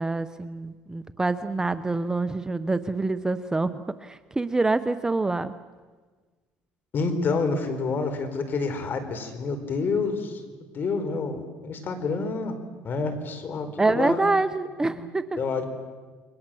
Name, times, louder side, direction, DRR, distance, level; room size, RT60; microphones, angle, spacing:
voice 1, 0.0-5.5 13.8-15.4, right 3 dB, 10° right, 11 dB, 0.8 m, -26 dB
voice 2, 6.9-10.4 10.7-12.6 12.8-14.2 14.8-15.0 15.4-15.7, left 4 dB, 40° left, 8 dB, 4.4 m, -28 dB
29.5 x 23.0 x 7.7 m, 1.4 s
cardioid pair, 115°, 5 cm